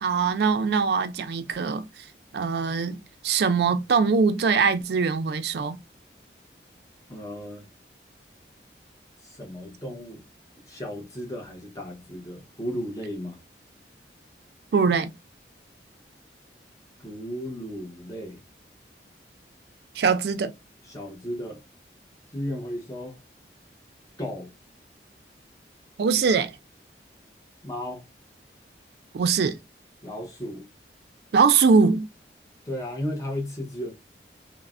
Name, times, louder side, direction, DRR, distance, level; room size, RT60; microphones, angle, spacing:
voice 1, 0.0-1.9 2.3-3.0 3.2-5.8 14.7-15.1 20.0-20.5 26.0-26.5 29.1-29.6 31.3-32.1, right 5 dB, 65° right, 0.3 m, -22 dB
voice 2, 7.1-7.7 9.2-10.2 10.7-13.4 17.0-18.4 20.9-21.6 22.3-23.1 24.2-24.5 27.6-28.0 30.0-30.7 32.7-33.9, equal, 20° left, 0.7 m, -34 dB
3.1 x 2.0 x 2.4 m
head